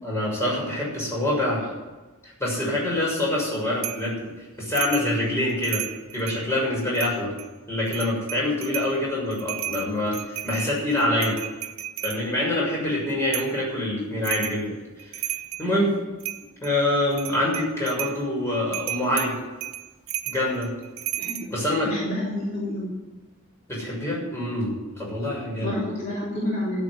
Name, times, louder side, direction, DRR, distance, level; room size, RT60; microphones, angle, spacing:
voice 1, 0.0-1.7 2.2-4.3 4.6-5.8 6.1-7.3 7.7-11.4 12.0-14.7 15.0-15.2 15.6-15.9 16.6-19.3 20.2-20.7 21.5-21.9 23.7-25.8, left 1 dB, 15° left, -4 dB, 6.6 m, -25 dB
sound 1, 3.8-4.1 4.7-5.1 5.5-6.4 6.9-7.5 7.9-8.9 9.3-12.2 13.3-13.6 14.2-14.6 15.0-15.7 16.2-16.7 17.1-18.2 18.7-21.5, right 13 dB, 75° right, 0.9 m, -33 dB
voice 2, 21.8-22.9 25.6-26.8, left 1 dB, 35° left, -7 dB, 3.6 m, -29 dB
13.5 x 8.1 x 9.7 m, 1.2 s
head